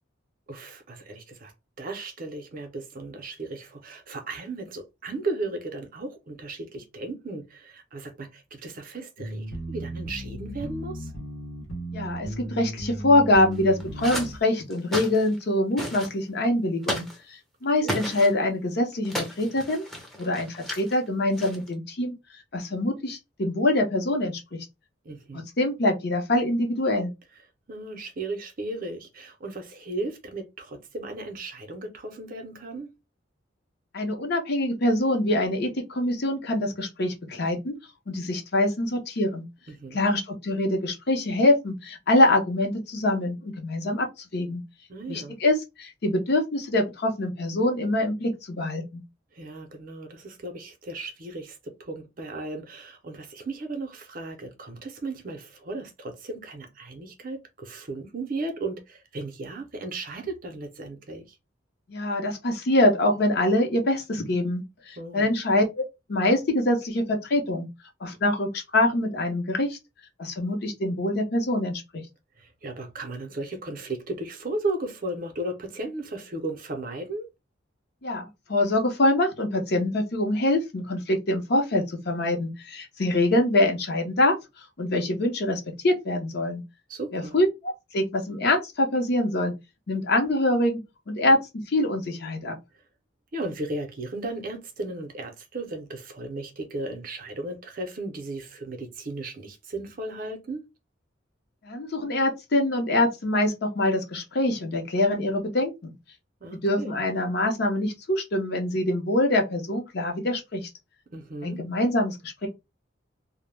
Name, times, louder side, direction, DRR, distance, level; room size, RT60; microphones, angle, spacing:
voice 1, 0.5-1.5 1.8-11.1 17.8-18.0 25.0-25.4 27.7-32.9 39.7-40.0 44.9-45.4 49.3-61.4 65.0-65.3 72.4-77.3 86.9-87.4 92.7-92.8 93.3-100.7 106.4-107.0 111.1-111.6, right 2 dB, 45° right, 0.6 m, -35 dB
sound 1, 9.2-14.4, right 1 dB, 80° left, 0.9 m, -36 dB
voice 2, 11.9-19.8 20.2-22.2 22.5-24.7 25.3-27.1 33.9-37.8 38.1-39.4 39.9-44.6 45.1-49.0 61.9-67.7 68.0-69.8 70.2-72.0 78.0-84.4 84.8-86.6 87.1-89.5 89.9-92.6 101.6-105.9 106.6-110.7 111.4-112.5, left 1 dB, 55° left, 0.6 m, -24 dB
sound 2, 13.5-14.3 14.7-15.4 15.8-16.1 16.8-17.2 17.8-18.3 19.1-21.0 21.4-21.7, left 1 dB, ahead, 0.5 m, -33 dB
2.1 x 2.0 x 3.1 m
head